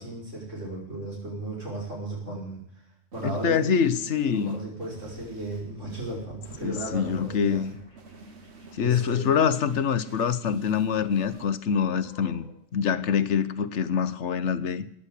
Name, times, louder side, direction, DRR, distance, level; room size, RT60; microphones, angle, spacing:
voice 1, 0.0-2.6 3.1-3.7 4.3-7.7 8.8-9.2, right 2 dB, 80° right, 6.3 m, -35 dB
sound 1, 3.1-11.9, right 3 dB, 60° right, 1.4 m, -50 dB
voice 2, 3.2-4.6 6.6-7.7 8.7-12.5 12.7-14.9, left 7 dB, 70° left, 1.1 m, -25 dB
sound 2, 4.9-12.7, right 2 dB, 30° right, 6.8 m, -54 dB
14.0 x 10.0 x 8.2 m
omnidirectional pair, 1.3 m